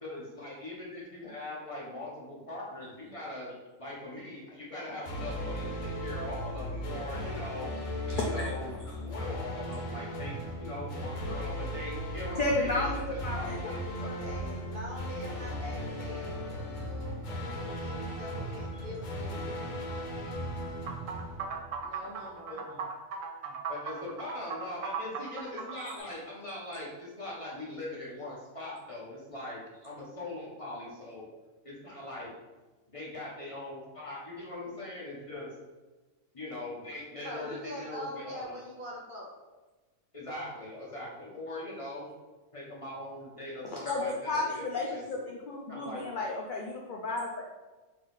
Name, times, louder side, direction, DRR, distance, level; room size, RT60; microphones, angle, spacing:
voice 1, 0.0-4.4 4.7-7.7 8.2-14.2 22.0-22.8 23.4-31.3 31.6-32.3 32.9-35.5 36.3-38.6 40.1-42.1 42.5-45.4 45.7-46.3, left 1 dB, 30° left, -5 dB, 0.9 m, -41 dB
sound 1, 5.0-22.1, equal, 75° left, 1.1 m, -37 dB
voice 2, 8.2-8.5 12.4-13.5 14.0-14.4 25.7-25.9 43.9-47.4, left 2 dB, 60° left, -1 dB, 0.5 m, -33 dB
voice 3, 14.0-20.1 21.8-22.6 37.2-39.3, left 1 dB, 50° right, -2 dB, 0.8 m, -44 dB
sound 2, 20.9-26.0, right 5 dB, 75° right, 0.9 m, -38 dB
4.0 x 2.7 x 3.9 m, 1.2 s
omnidirectional pair, 1.4 m